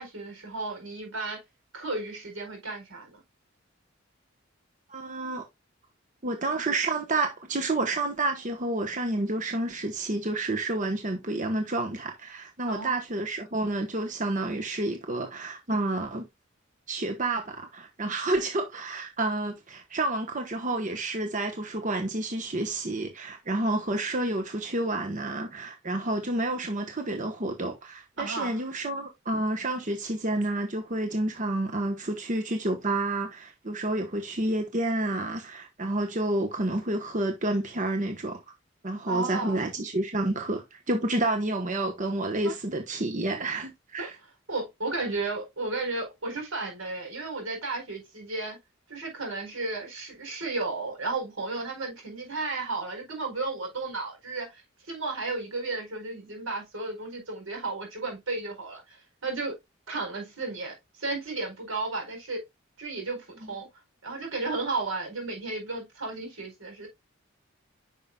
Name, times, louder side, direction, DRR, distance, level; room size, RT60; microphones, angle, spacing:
voice 1, 0.0-1.4 1.7-3.2 12.7-12.9 28.2-28.6 39.1-39.7 42.4-42.5 44.0-44.1 44.5-48.6 48.9-54.6 54.9-59.6 59.9-60.7 61.0-62.4 62.8-63.7 64.0-66.9, right 3 dB, 90° right, 4.5 m, -33 dB
voice 2, 4.9-5.4 6.2-16.2 16.9-38.4 38.8-44.1, right 2 dB, 40° right, 1.0 m, -29 dB
9.7 x 5.6 x 2.3 m
head